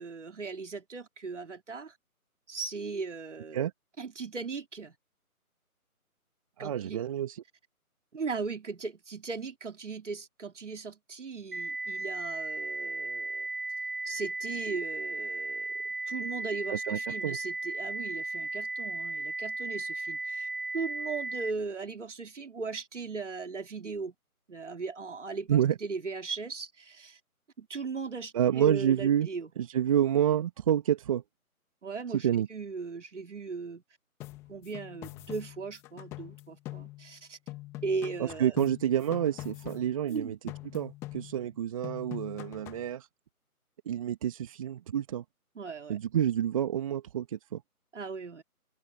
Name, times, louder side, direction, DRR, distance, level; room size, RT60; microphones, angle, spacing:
voice 1, 0.0-1.9 2.5-3.6 4.0-4.9 6.6-7.0 8.1-13.5 14.0-15.7 16.1-20.5 20.7-24.1 24.5-27.2 27.6-29.5 31.8-33.8 34.5-37.4 37.8-38.6 40.1-40.4 45.5-46.0 47.9-48.4, right 4 dB, 50° right, 3.4 m, -38 dB
voice 2, 6.6-7.4 16.7-17.4 25.5-25.7 28.3-29.3 29.6-31.2 32.1-32.5 38.2-40.4 40.7-43.1 43.9-45.2 45.9-47.6, right 10 dB, 25° right, 2.6 m, -28 dB
sound 1, 11.5-21.5, right 2 dB, 80° right, 1.5 m, -35 dB
sound 2, 34.2-37.2 37.5-40.2 40.5-41.6 41.8-42.9, left 17 dB, 5° left, 1.6 m, -44 dB
figure-of-eight pair, 155°, 45 cm